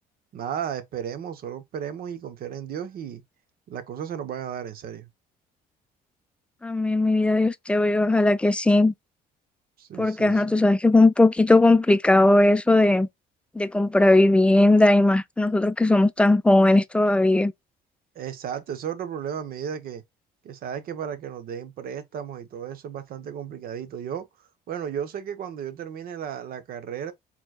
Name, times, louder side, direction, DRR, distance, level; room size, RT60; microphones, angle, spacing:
voice 1, 0.3-3.2 3.7-5.1 9.8-10.5 18.1-20.0 20.4-24.3 24.7-27.1, right 8 dB, 60° right, 0.9 m, -34 dB
voice 2, 6.6-8.9 10.0-13.1 13.5-17.5, left 2 dB, 5° left, 0.4 m, -18 dB
4.5 x 2.9 x 2.4 m
cardioid pair, 110°, 17 cm